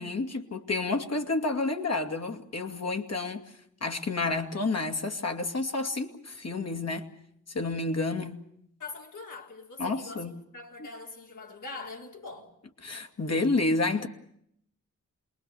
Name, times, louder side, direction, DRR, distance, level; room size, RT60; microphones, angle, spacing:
voice 1, 0.0-3.4 3.8-7.1 7.5-8.4 9.8-10.3 10.8-10.9 12.8-14.1, left 3 dB, 55° left, 2.4 m, -30 dB
voice 2, 8.8-12.5, left 3 dB, 70° left, 3.9 m, -43 dB
27.5 x 21.5 x 7.0 m
wide cardioid pair, 120°, 31 cm